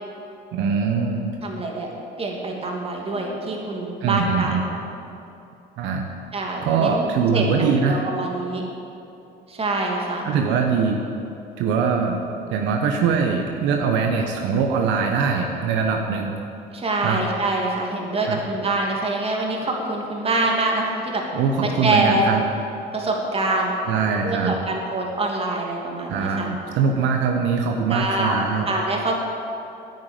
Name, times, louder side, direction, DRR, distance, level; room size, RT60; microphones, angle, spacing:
voice 1, 0.5-1.4 4.0-4.6 5.8-6.1 6.6-8.1 10.2-11.0 11.6-12.2 12.5-16.3 17.0-17.2 18.3-18.4 21.3-22.4 23.9-24.6 26.1-28.7, right 5 dB, 75° right, 2 dB, 1.2 m, -22 dB
voice 2, 1.4-1.9 2.2-4.6 6.3-8.6 9.5-10.3 16.7-21.2 21.6-22.2 22.9-23.7 24.2-26.5 27.9-29.2, right 2 dB, 30° right, 0 dB, 2.8 m, -25 dB
9.6 x 9.6 x 9.2 m, 2.8 s
supercardioid pair, 95°, 19 cm